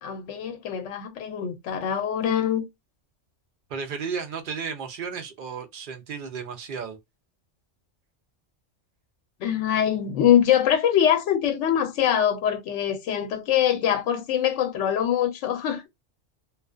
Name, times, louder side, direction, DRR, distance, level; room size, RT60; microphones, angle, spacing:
voice 1, 0.0-2.6 9.4-15.9, left 9 dB, 80° left, 0.9 m, -23 dB
voice 2, 3.7-7.0, right 6 dB, 60° right, 0.6 m, -33 dB
2.4 x 2.2 x 2.3 m
omnidirectional pair, 1.2 m